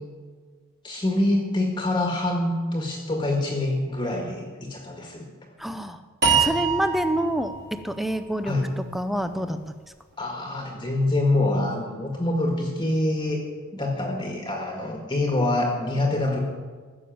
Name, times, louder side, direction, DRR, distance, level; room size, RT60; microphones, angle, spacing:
voice 1, 0.8-5.3 5.7-5.8 8.4-8.7 10.2-13.4 13.7-16.4, left 2 dB, 20° left, 1 dB, 1.7 m, -25 dB
voice 2, 5.6-6.0 6.4-7.5 7.8-8.5 8.9-9.6, right 1 dB, ahead, 9 dB, 0.6 m, -26 dB
sound 1, 6.2-9.4, right 5 dB, 50° right, 3.2 m, -26 dB
15.5 x 6.9 x 8.6 m, 1.5 s
head